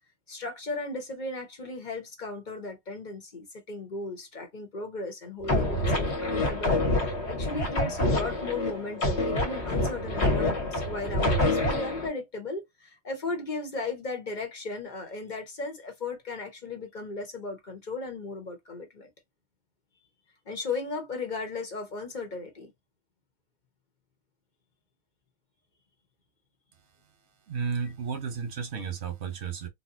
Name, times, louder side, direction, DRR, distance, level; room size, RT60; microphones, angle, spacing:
voice 1, 0.3-19.1 20.5-22.7, left 3 dB, 45° left, 1.0 m, -36 dB
sound 1, 5.4-12.1, left 1 dB, 85° left, 1.6 m, -27 dB
voice 2, 27.5-29.7, right 6 dB, 80° right, 1.3 m, -33 dB
4.1 x 2.2 x 2.6 m
omnidirectional pair, 1.1 m